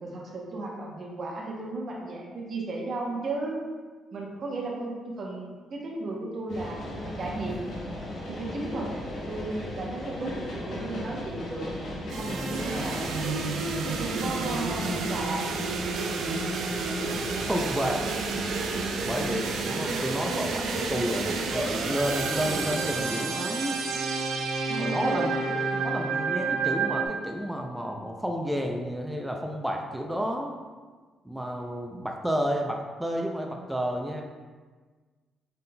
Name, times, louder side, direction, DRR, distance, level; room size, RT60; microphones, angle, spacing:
voice 1, 0.0-3.6 4.1-7.6 8.3-8.9 9.3-11.7 12.1-13.4 13.8-15.4 20.7-20.9 24.7-25.8 31.9-32.0, right 2 dB, 50° right, -2 dB, 0.7 m, -34 dB
sound 1, 6.5-23.0, left 1 dB, 70° left, 0.9 m, -37 dB
sound 2, 12.1-27.1, right 4 dB, 75° right, 0.4 m, -30 dB
voice 2, 17.4-18.1 19.0-23.8 24.8-25.3 25.8-30.6 31.2-34.2, equal, 5° right, 1 dB, 0.4 m, -31 dB
4.0 x 3.6 x 2.2 m, 1.4 s
cardioid pair, 90°, 0 cm